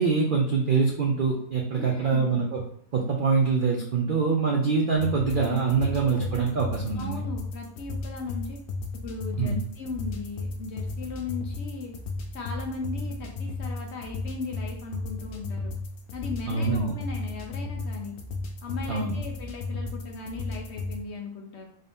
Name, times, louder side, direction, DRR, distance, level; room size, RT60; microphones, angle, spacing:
voice 1, 0.0-2.6 2.9-7.2 9.4-9.6 16.5-16.9 18.9-19.1, right 5 dB, 70° right, 0 dB, 0.5 m, -24 dB
voice 2, 1.7-2.3 5.8-6.3 6.5-6.6 6.9-8.6 9.0-11.9 12.3-15.7 16.1-18.2 18.6-21.7, left 4 dB, 60° left, 1 dB, 0.8 m, -37 dB
sound 1, 4.9-21.0, left 3 dB, 75° left, 1.1 m, -35 dB
3.7 x 2.6 x 3.4 m, 0.65 s
omnidirectional pair, 1.5 m